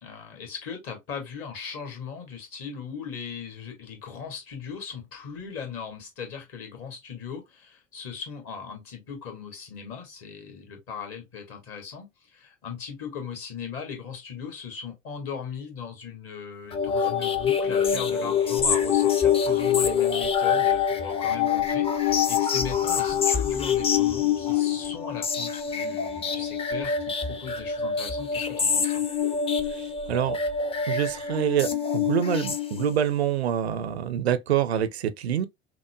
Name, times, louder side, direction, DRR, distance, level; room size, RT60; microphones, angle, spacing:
voice 1, 0.0-29.0, left 6 dB, 45° left, 1.6 m, -38 dB
sound 1, 16.7-33.1, left 7 dB, 20° left, 0.5 m, -25 dB
voice 2, 29.7-30.4 30.9-35.5, right 10 dB, 75° right, 0.5 m, -26 dB
5.7 x 2.1 x 2.2 m
figure-of-eight pair, 65°, 32 cm